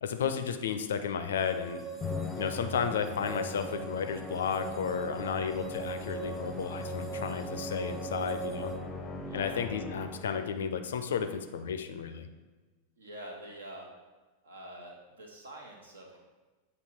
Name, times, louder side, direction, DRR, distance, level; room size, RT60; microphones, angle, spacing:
voice 1, 0.0-1.8 2.4-8.7 9.3-12.3, left 7 dB, 60° left, 8 dB, 0.4 m, -33 dB
sound 1, 1.4-8.8, right 6 dB, 10° right, 0.9 m, -41 dB
Musical instrument, 2.0-10.5, left 3 dB, 20° left, 0.6 m, -40 dB
voice 2, 9.2-9.7 13.0-13.9 14.4-16.2, right 1 dB, 70° right, 1 dB, 1.1 m, -46 dB
8.1 x 2.8 x 4.4 m, 1.3 s
figure-of-eight pair, 90°, 0 cm